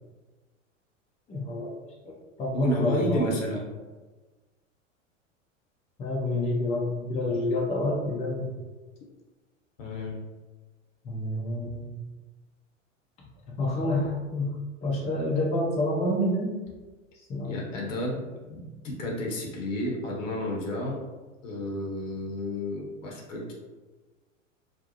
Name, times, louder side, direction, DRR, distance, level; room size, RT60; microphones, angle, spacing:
voice 1, 1.3-1.7 2.0-3.3 6.0-8.5 11.0-12.0 13.5-16.6 17.3-17.6, left 1 dB, 15° left, -3 dB, 0.4 m, -28 dB
voice 2, 2.5-3.6 9.8-10.2 17.4-21.0 21.4-23.5, left 1 dB, 70° left, -2 dB, 0.9 m, -31 dB
2.6 x 2.0 x 2.7 m, 1.2 s
hypercardioid pair, 90°, 39 cm